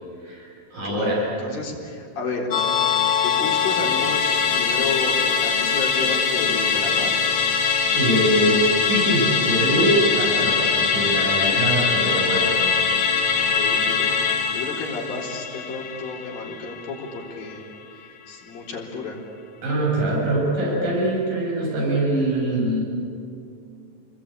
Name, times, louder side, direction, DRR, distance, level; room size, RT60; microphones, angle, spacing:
voice 1, 0.2-1.3 7.9-12.5 19.6-22.8, right 1 dB, 75° right, -3 dB, 8.7 m, -23 dB
voice 2, 0.8-2.5 3.2-5.2 5.4-7.3 13.3-17.7 18.0-19.2, left 4 dB, 90° left, -2 dB, 5.7 m, -32 dB
Musical instrument, 2.5-17.2 17.5-17.6, left 6 dB, 65° left, 2.8 m, -22 dB
29.5 x 21.5 x 8.9 m, 2.5 s
omnidirectional pair, 4.0 m